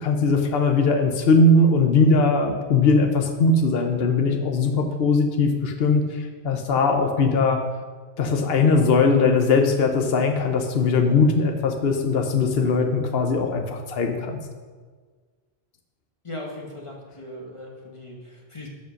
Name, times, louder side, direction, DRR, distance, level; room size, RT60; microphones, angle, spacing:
voice 1, 0.0-7.6 8.2-14.4, left 3 dB, 70° left, 4 dB, 1.1 m, -20 dB
voice 2, 16.2-18.7, left 1 dB, 30° left, -1 dB, 1.5 m, -38 dB
11.5 x 5.2 x 6.5 m, 1.5 s
omnidirectional pair, 1.1 m